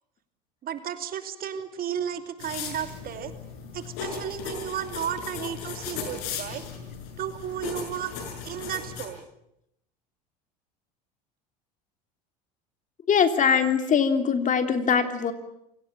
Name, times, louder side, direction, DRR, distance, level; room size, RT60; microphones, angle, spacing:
voice 1, 0.6-3.3 3.7-6.6 7.2-8.1 8.4-9.2, right 9 dB, 45° right, 8 dB, 2.8 m, -33 dB
sound 1, 2.4-9.1, left 6 dB, 70° left, 6.5 m, -37 dB
voice 2, 13.1-15.3, left 7 dB, 40° left, 8 dB, 3.1 m, -22 dB
27.5 x 18.5 x 8.9 m, 0.78 s
hypercardioid pair, 80°, 20 cm